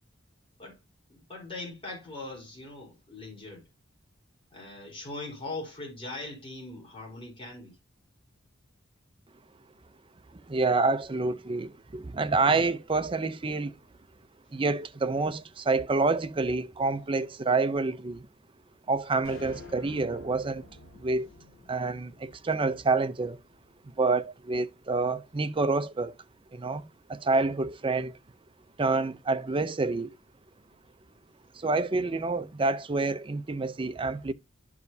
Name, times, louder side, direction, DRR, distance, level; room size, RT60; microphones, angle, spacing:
voice 1, 1.1-3.6 4.5-7.7, left 2 dB, 25° left, 4.0 m, -40 dB
voice 2, 10.3-13.8 14.5-18.3 18.9-20.6 20.9-21.3 21.7-23.4 24.0-26.1 26.5-26.8 27.1-28.2 28.8-30.1 31.5-34.3, right 3 dB, 25° right, 0.5 m, -28 dB
sound 1, 19.2-23.7, left 1 dB, 70° left, 4.3 m, -49 dB
12.0 x 4.9 x 2.7 m
head